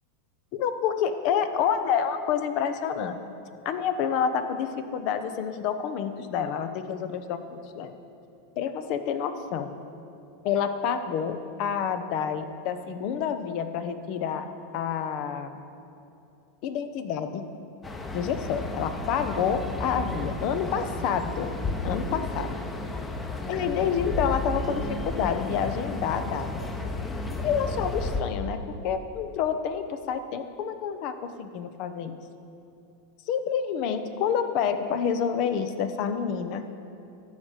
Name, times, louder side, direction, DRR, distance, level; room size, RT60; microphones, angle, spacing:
voice 1, 0.5-3.2 3.6-7.9 8.6-9.7 10.4-14.4 14.7-15.5 16.6-17.5 18.1-21.5 21.8-22.5 23.5-26.5 27.4-32.2 33.3-36.6, left 7 dB, 55° left, 9 dB, 0.8 m, -28 dB
sound 1, 17.8-28.2, left 2 dB, 15° left, 1.0 m, -32 dB
12.5 x 5.0 x 8.1 m, 2.8 s
hypercardioid pair, 95°, 0 cm